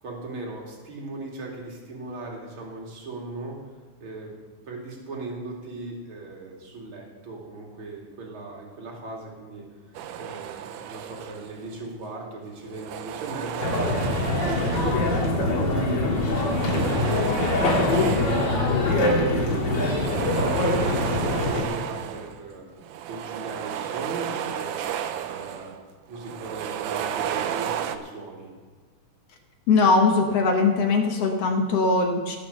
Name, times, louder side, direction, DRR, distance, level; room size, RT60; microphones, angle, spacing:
voice 1, 0.0-3.7 4.0-4.4 4.7-9.7 10.2-17.3 17.6-21.0 21.4-22.7 23.0-24.8 25.3-25.8 26.1-28.5, right 2 dB, 40° right, -2 dB, 3.0 m, -37 dB
sound 1, 9.9-11.8 12.6-15.6 16.1-18.9 19.4-22.4 22.8-25.8 26.1-28.0, right 9 dB, 80° right, 2.1 m, -33 dB
sound 2, 13.6-21.6, left 2 dB, 40° left, 2.0 m, -23 dB
voice 2, 29.7-32.4, left 3 dB, 60° left, 3 dB, 1.8 m, -21 dB
17.5 x 6.2 x 6.8 m, 1.5 s
omnidirectional pair, 3.7 m